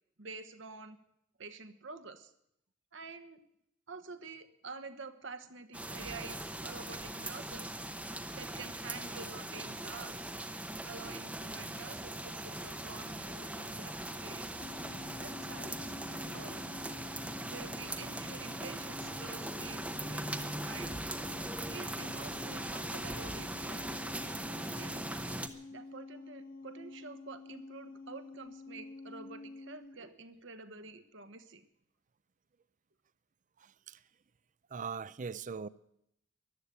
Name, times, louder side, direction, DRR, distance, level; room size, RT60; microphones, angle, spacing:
voice 1, 0.2-1.0 1.4-2.3 2.9-3.4 3.9-7.8 8.3-10.3 10.8-14.7 15.1-16.0 16.3-16.7 17.5-21.0 21.7-23.9 24.6-25.0 25.7-31.6, right 4 dB, 65° right, 1.3 m, -48 dB
sound 1, 5.7-25.5, right 1 dB, 5° right, 0.8 m, -40 dB
sound 2, 14.6-30.0, left 3 dB, 45° left, 0.6 m, -49 dB
voice 2, 33.6-34.0 34.7-35.7, right 5 dB, 40° right, 0.5 m, -40 dB
14.0 x 11.5 x 8.3 m
head